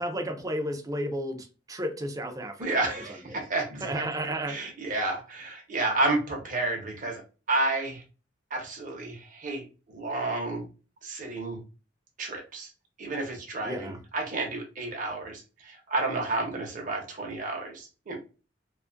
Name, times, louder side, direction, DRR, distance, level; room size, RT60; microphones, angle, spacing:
voice 1, 0.0-3.4 3.8-4.6 13.6-14.0, equal, 20° right, 0.4 m, -33 dB
voice 2, 2.6-7.2 7.5-8.0 8.5-10.7 11.0-11.6 12.2-12.7 13.0-18.2, right 2 dB, 45° right, 0.8 m, -31 dB
2.6 x 2.3 x 2.5 m
head